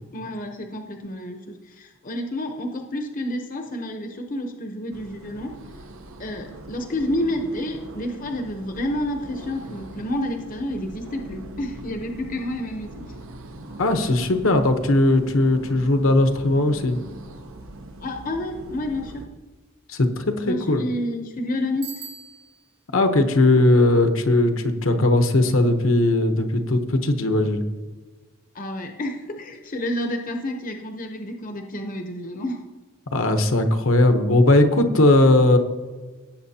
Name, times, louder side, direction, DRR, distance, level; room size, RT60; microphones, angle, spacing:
voice 1, 0.1-5.5 6.2-13.0 18.0-19.2 20.4-21.9 28.5-32.6, left 1 dB, 40° left, 4 dB, 0.8 m, -29 dB
sound 1, 4.9-19.3, right 1 dB, 75° right, 0.8 m, -41 dB
voice 2, 13.8-17.0 19.9-20.8 22.9-27.6 33.1-35.6, left 2 dB, 70° left, 6 dB, 1.0 m, -18 dB
Bicycle bell, 21.8-22.8, right 7 dB, 90° right, 1.2 m, -40 dB
17.5 x 8.1 x 2.8 m, 1.3 s
head